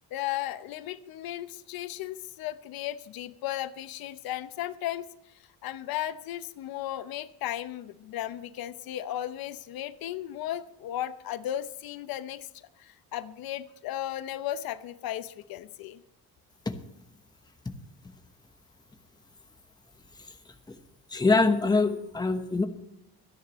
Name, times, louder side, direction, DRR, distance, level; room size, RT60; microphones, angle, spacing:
voice 1, 0.1-16.0, left 12 dB, 75° left, 12 dB, 0.8 m, -35 dB
voice 2, 21.1-22.7, left 3 dB, 10° left, 6 dB, 1.1 m, -24 dB
25.5 x 10.5 x 3.1 m, 0.83 s
cardioid pair, 155°, 36 cm